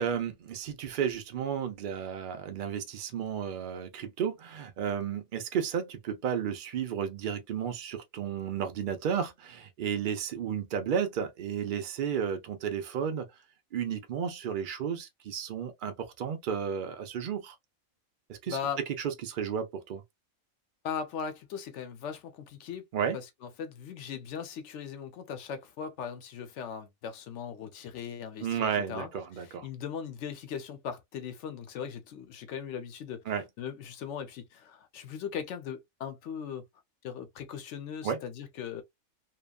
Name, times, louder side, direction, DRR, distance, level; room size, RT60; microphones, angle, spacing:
voice 1, 0.0-13.3 13.7-17.6 18.3-18.6 19.0-20.0 22.9-23.2 28.4-29.7 33.3-33.4 38.0-38.2, right 8 dB, 70° right, 0.4 m, -33 dB
voice 2, 18.5-18.8 20.8-22.9 23.1-23.3 23.6-29.1 29.4-33.2 33.6-36.6 37.0-38.8, left 7 dB, 65° left, 0.9 m, -39 dB
2.8 x 2.2 x 2.2 m
omnidirectional pair, 1.4 m